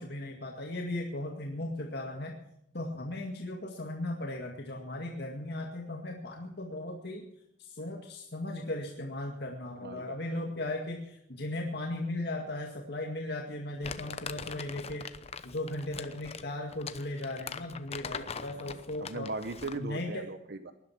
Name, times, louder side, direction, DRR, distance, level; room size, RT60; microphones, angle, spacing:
voice 1, 0.0-2.4 2.7-7.2 7.6-15.1 15.4-19.3 19.8-20.3, left 1 dB, 60° left, 1 dB, 2.1 m, -37 dB
voice 2, 9.8-10.1 18.5-18.7 19.0-20.7, right 3 dB, 60° right, 10 dB, 0.8 m, -39 dB
Crumpling crinkling, 13.8-19.9, left 5 dB, 35° left, 0.8 m, -42 dB
19.0 x 11.5 x 6.0 m, 0.78 s
head